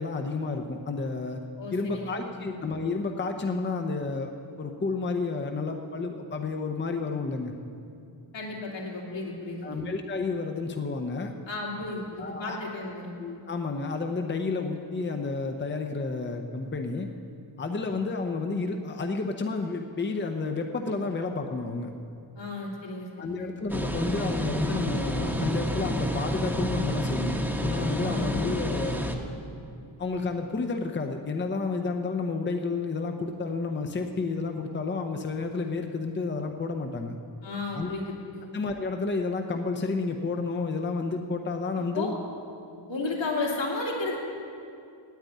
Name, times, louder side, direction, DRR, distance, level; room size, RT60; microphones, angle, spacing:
voice 1, 0.0-1.4 1.7-4.3 4.6-7.5 9.6-11.3 12.2-12.6 13.2-17.1 17.6-21.9 23.2-29.1 30.0-37.2 37.7-37.9 38.5-42.1, left 4 dB, 25° left, 4 dB, 0.7 m, -31 dB
voice 2, 1.6-2.5 8.3-9.8 11.5-13.1 22.4-23.5 28.0-28.8 37.4-38.5 41.9-42.1 42.9-44.2, left 3 dB, 75° left, -3 dB, 2.8 m, -33 dB
sound 1, 23.7-29.1, equal, 5° right, 1.1 m, -29 dB
9.2 x 8.8 x 9.2 m, 2.5 s
cardioid pair, 90°, 46 cm